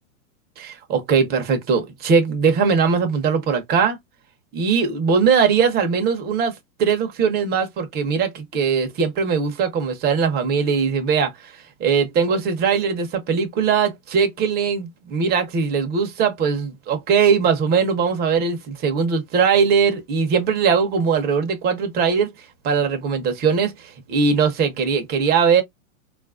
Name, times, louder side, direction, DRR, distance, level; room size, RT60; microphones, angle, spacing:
voice 1, 0.6-4.0 4.5-6.5 6.8-11.3 11.8-22.3 22.6-23.7 24.1-25.6, right 6 dB, 25° right, 0.7 m, -20 dB
3.6 x 2.5 x 2.4 m
hypercardioid pair, 135°, 43 cm